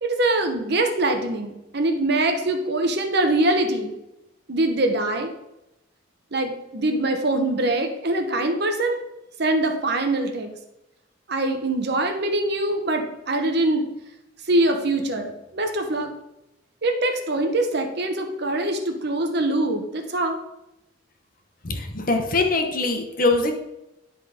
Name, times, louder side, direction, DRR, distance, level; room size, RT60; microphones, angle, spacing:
voice 1, 0.0-3.9 4.5-5.3 6.3-9.0 9.4-10.5 11.3-13.9 14.5-16.1 16.8-20.4, right 2 dB, 55° right, 4 dB, 1.0 m, -23 dB
voice 2, 21.6-23.5, left 3 dB, 45° left, 4 dB, 1.1 m, -22 dB
10.5 x 3.9 x 5.1 m, 0.91 s
head